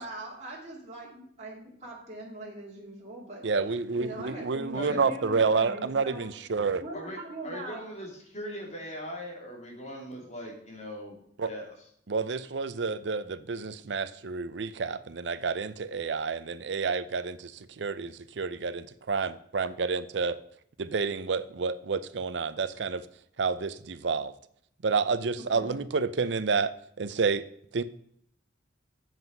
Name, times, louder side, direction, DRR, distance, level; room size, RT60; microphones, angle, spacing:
voice 1, 0.0-3.4 4.0-6.3 6.8-7.8 25.5-25.7, right 2 dB, 40° right, -4 dB, 2.3 m, -41 dB
voice 2, 3.4-6.8 11.4-11.5 12.1-19.3 19.5-20.4 20.8-23.0 23.4-24.3 24.8-27.4 27.7-27.8, right 4 dB, 70° right, 14 dB, 0.6 m, -29 dB
voice 3, 6.9-11.2 11.5-11.7, equal, 40° left, -1 dB, 3.0 m, -40 dB
8.1 x 7.7 x 5.4 m, 0.68 s
head